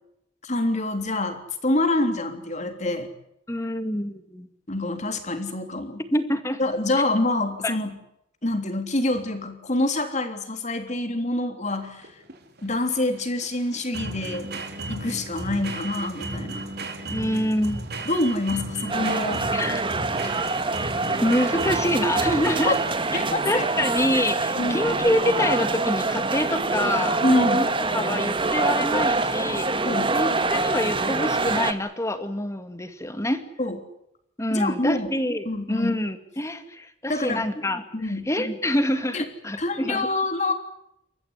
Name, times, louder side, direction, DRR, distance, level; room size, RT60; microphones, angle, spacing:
voice 1, 0.4-3.1 4.7-6.0 6.6-7.9 8.4-12.1 12.6-14.5 14.9-16.7 18.1-19.5 22.7-22.8 23.1-23.7 24.6-24.8 27.2-27.7 29.9-30.2 33.6-33.8 34.5-35.1 35.5-36.0 37.1-37.5 37.9-38.3 39.1-39.3 39.6-40.5, left 2 dB, 40° left, 7 dB, 3.4 m, -26 dB
voice 2, 3.5-4.5 6.1-6.6 7.6-7.8 17.1-17.9 19.5-19.8 21.2-22.8 23.5-33.4 34.4-40.1, left 1 dB, 15° left, 9 dB, 2.2 m, -26 dB
sound 1, 11.7-23.3, right 2 dB, 55° right, 4.0 m, -35 dB
sound 2, 18.9-31.7, right 3 dB, 25° right, 1.6 m, -25 dB
29.0 x 14.5 x 9.9 m, 0.80 s
head